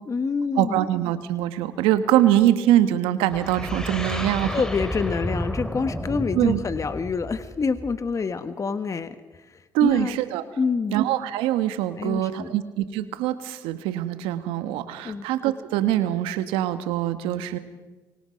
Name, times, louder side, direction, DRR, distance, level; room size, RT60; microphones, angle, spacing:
voice 1, 0.1-0.8 4.5-10.2 10.6-11.0 12.0-12.5 15.0-15.3, left 5 dB, 35° left, 10 dB, 1.4 m, -27 dB
voice 2, 0.6-4.6 6.3-6.6 9.7-10.4 10.9-17.6, right 12 dB, 80° right, 11 dB, 1.5 m, -23 dB
sound 1, 3.3-8.1, equal, 5° left, 2.9 m, -31 dB
27.0 x 24.0 x 5.3 m, 1.2 s
hypercardioid pair, 60°, 9 cm